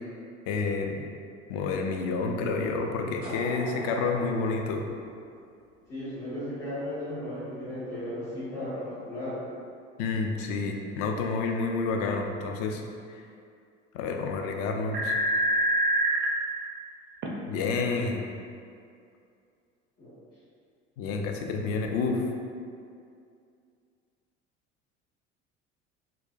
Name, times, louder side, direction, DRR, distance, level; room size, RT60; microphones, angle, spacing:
voice 1, 0.5-1.0 1.5-4.8 10.0-12.8 13.9-15.1 17.5-18.2 21.0-22.2, left 4 dB, 40° left, 3 dB, 0.4 m, -29 dB
sound 1, 3.2-6.1, equal, 90° left, 0.9 m, -42 dB
voice 2, 5.9-9.4 20.0-20.1, left 1 dB, 70° left, -16 dB, 1.5 m, -35 dB
sound 2, 14.6-14.7 14.9-16.3 17.2-17.3, right 1 dB, 30° right, 0.4 m, -25 dB
4.2 x 2.2 x 2.4 m, 2.4 s
figure-of-eight pair, 65°, 37 cm